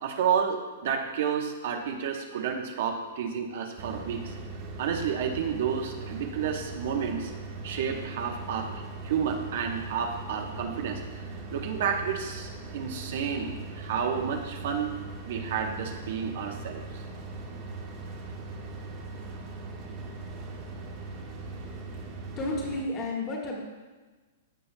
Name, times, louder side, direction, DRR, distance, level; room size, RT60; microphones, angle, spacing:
voice 1, 0.0-4.4 4.8-7.3 7.6-11.0 11.5-14.9 15.2-16.8, right 7 dB, 55° right, 3 dB, 0.9 m, -30 dB
sound 1, 3.8-22.8, right 3 dB, 25° right, 1.1 m, -40 dB
voice 2, 22.4-23.6, left 2 dB, 20° left, -2 dB, 1.5 m, -31 dB
14.5 x 5.6 x 2.2 m, 1.3 s
hypercardioid pair, 165°, 0 cm